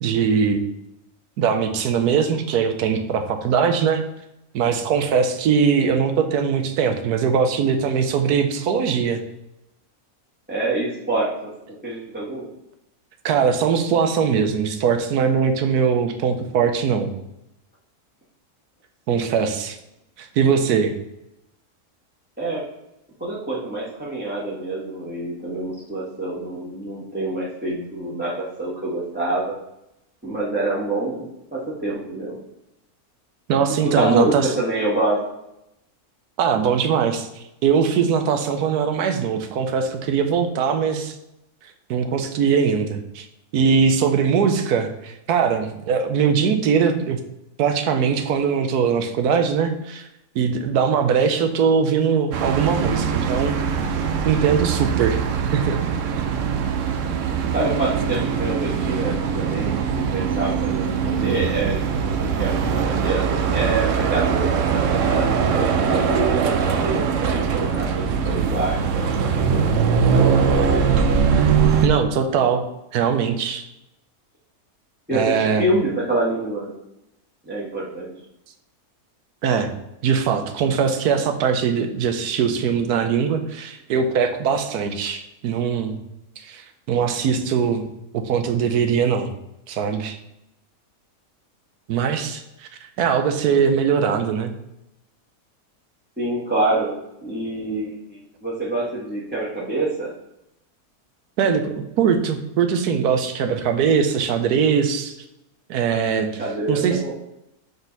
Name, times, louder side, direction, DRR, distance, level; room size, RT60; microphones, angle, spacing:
voice 1, 0.0-0.6 1.4-4.0 4.5-9.2 13.2-17.1 19.1-19.8 20.2-20.9 33.5-34.5 36.4-41.1 41.9-43.3 43.5-47.2 47.6-50.1 50.3-53.6 54.2-55.2 55.5-55.8 71.8-72.7 72.9-73.6 75.1-75.6 79.4-79.7 80.0-86.0 86.4-87.9 88.1-89.3 89.7-90.2 91.9-92.7 93.0-94.5 101.4-105.1 105.7-106.3 106.7-107.0, right 6 dB, 90° right, 7 dB, 1.3 m, -21 dB
voice 2, 10.5-11.5 11.8-12.5 19.1-19.3 22.4-22.6 23.2-29.6 30.2-31.2 31.5-32.4 33.8-35.2 57.5-70.8 75.1-76.8 77.4-78.1 96.2-96.9 97.2-100.1 106.4-107.1, right 2 dB, 5° right, -8 dB, 1.4 m, -26 dB
sound 1, 52.3-71.9, right 6 dB, 65° right, 0.9 m, -21 dB
7.0 x 4.0 x 4.0 m, 0.85 s
omnidirectional pair, 1.6 m